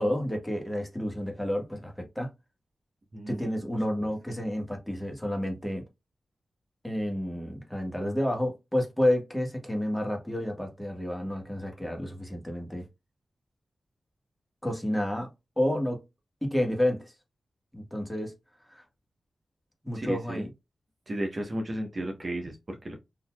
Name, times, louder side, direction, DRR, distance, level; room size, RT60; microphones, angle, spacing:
voice 1, 0.0-2.3 3.3-5.8 6.8-12.9 14.6-15.3 15.6-16.0 16.4-17.1 17.7-18.3 18.7-18.8 19.8-20.5, left 1 dB, 5° left, 1.4 m, -30 dB
voice 2, 3.1-3.4 4.0-4.1 19.9-20.5 21.1-23.0, right 1 dB, 45° right, 1.0 m, -34 dB
4.1 x 2.8 x 2.3 m
cardioid pair, 45°, 0 cm